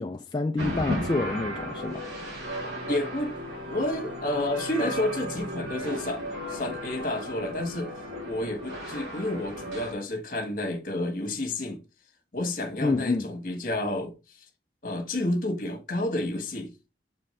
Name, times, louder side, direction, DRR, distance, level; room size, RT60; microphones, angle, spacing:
voice 1, 0.0-2.1 12.8-13.3, left 3 dB, 25° left, 0.4 m, -28 dB
sound 1, 0.6-9.9, equal, 70° right, 3.2 m, -35 dB
sound 2, 2.3-6.8, equal, 30° right, 0.7 m, -45 dB
voice 2, 2.8-3.4 3.7-7.9 8.3-11.8 12.3-14.4 14.8-16.7, left 1 dB, 50° left, 1.4 m, -30 dB
7.1 x 4.4 x 3.2 m
head